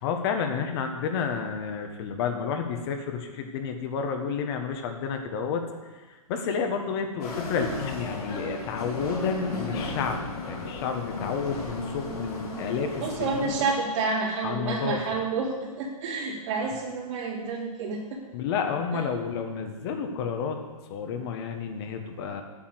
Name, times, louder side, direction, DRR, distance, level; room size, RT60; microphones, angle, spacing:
voice 1, 0.0-5.6 5.9-10.2 10.5-13.5 14.4-15.0 18.3-20.6 20.9-22.4, left 6 dB, 45° left, 5 dB, 1.3 m, -30 dB
sound 1, 7.2-13.7, left 2 dB, 85° left, 3.5 m, -35 dB
voice 2, 13.0-18.2, right 4 dB, 55° right, -3 dB, 3.5 m, -29 dB
8.8 x 7.1 x 7.9 m, 1.3 s
hypercardioid pair, 135°, 19 cm